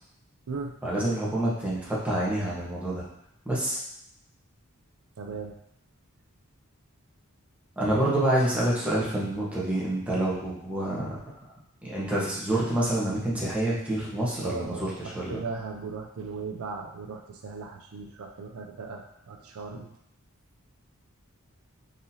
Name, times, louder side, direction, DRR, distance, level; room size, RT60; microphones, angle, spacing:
voice 1, 0.8-3.0 3.4-3.8 7.8-11.2 11.8-15.4, right 1 dB, 5° right, -7 dB, 1.0 m, -27 dB
voice 2, 5.2-5.6 14.4-19.9, right 4 dB, 70° right, 2 dB, 0.4 m, -37 dB
3.9 x 2.9 x 2.8 m, 0.72 s
head